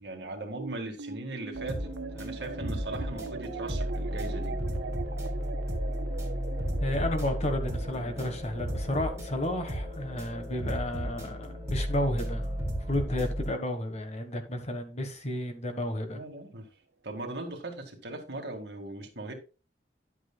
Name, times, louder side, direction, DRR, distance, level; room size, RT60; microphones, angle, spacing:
voice 1, 0.0-4.6 16.1-16.7 17.0-19.3, right 2 dB, 65° right, 2.0 m, -39 dB
sound 1, 0.6-13.2, right 4 dB, 90° right, 0.7 m, -42 dB
sound 2, 1.5-13.5, equal, 15° right, 3.0 m, -34 dB
voice 2, 6.8-16.2, left 1 dB, 40° left, 1.4 m, -32 dB
11.0 x 8.0 x 2.3 m
head